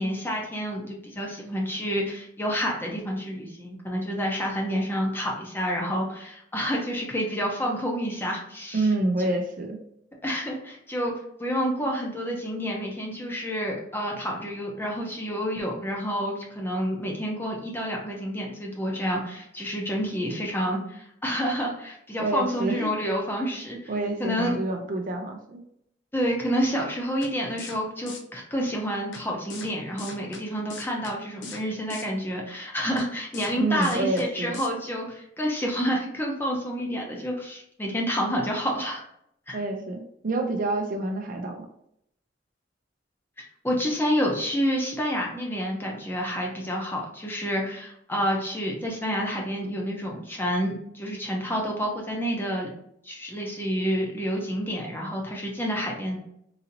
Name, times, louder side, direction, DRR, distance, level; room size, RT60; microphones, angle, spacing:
voice 1, 0.0-8.9 9.2-9.3 10.2-11.1 11.4-23.9 24.2-24.5 26.1-39.0 39.5-39.6 43.6-52.7 53.0-56.2, equal, 10° left, -1 dB, 0.7 m, -29 dB
voice 2, 8.7-9.8 22.2-22.9 23.9-25.6 33.6-34.6 39.5-41.7, right 2 dB, 45° right, 3 dB, 0.5 m, -28 dB
sound 1, 27.2-27.3 27.6-27.8 28.1-28.2 29.1-29.2 29.5-29.7 30.0-30.4 30.7-31.1 31.4-31.6 31.9-32.0 33.0-33.1 33.3-33.5 33.8-34.2 34.5-34.7, left 3 dB, 85° left, 0.6 m, -39 dB
3.9 x 2.7 x 2.7 m, 0.73 s
head